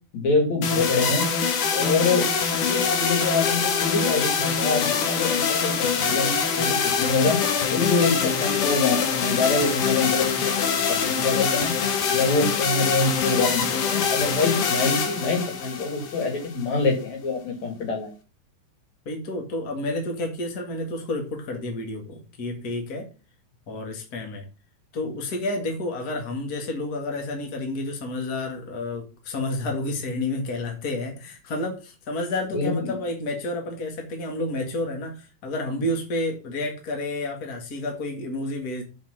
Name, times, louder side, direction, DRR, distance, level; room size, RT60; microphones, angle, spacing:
voice 1, 0.1-1.3 1.7-7.4 7.7-11.7 12.1-18.1 32.5-32.9 35.7-35.8, left 3 dB, 65° left, 4.0 m, -25 dB
sound 1, 0.6-16.6, left 6 dB, 90° left, 3.0 m, -24 dB
voice 2, 19.1-23.1 23.7-24.4 24.9-38.8, left 2 dB, 35° left, 2.2 m, -30 dB
7.2 x 5.7 x 7.4 m
omnidirectional pair, 3.4 m